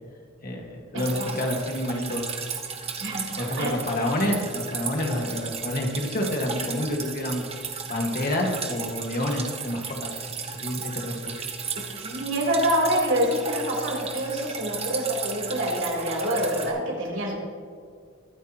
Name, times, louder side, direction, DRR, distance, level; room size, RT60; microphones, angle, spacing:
voice 1, 0.4-2.3 3.4-7.4 7.9-10.1 10.5-11.4, left 1 dB, 50° left, 1 dB, 1.8 m, -28 dB
voice 2, 0.9-1.3 3.0-3.7 11.7-17.3, equal, 85° right, -3 dB, 3.6 m, -26 dB
Drip, 1.0-16.7, right 6 dB, 30° right, 1.1 m, -35 dB
22.5 x 8.4 x 3.0 m, 2.1 s
head